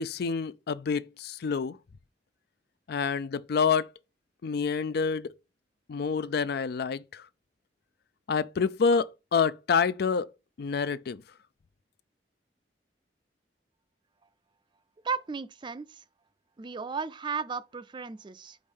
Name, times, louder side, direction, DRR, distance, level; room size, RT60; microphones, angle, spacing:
voice 1, 0.0-1.8 2.9-3.9 4.4-5.3 5.9-7.2 8.3-10.3 10.6-11.2, left 5 dB, 65° left, 0.4 m, -27 dB
voice 2, 15.0-16.0 16.6-18.6, right 5 dB, 25° right, 0.4 m, -35 dB
5.0 x 4.4 x 5.3 m
head